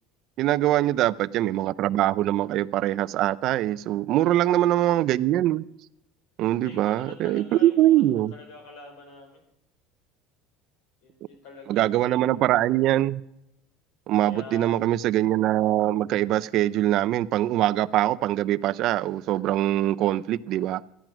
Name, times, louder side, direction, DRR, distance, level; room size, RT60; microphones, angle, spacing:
voice 1, 0.4-5.6 6.4-8.3 11.7-13.2 14.1-20.8, right 14 dB, 45° right, 0.4 m, -23 dB
voice 2, 4.1-4.5 6.6-7.9 8.3-9.4 11.0-12.2 14.2-14.7, left 4 dB, 85° left, 4.6 m, -45 dB
14.0 x 9.1 x 5.9 m
cardioid pair, 170°, 0 cm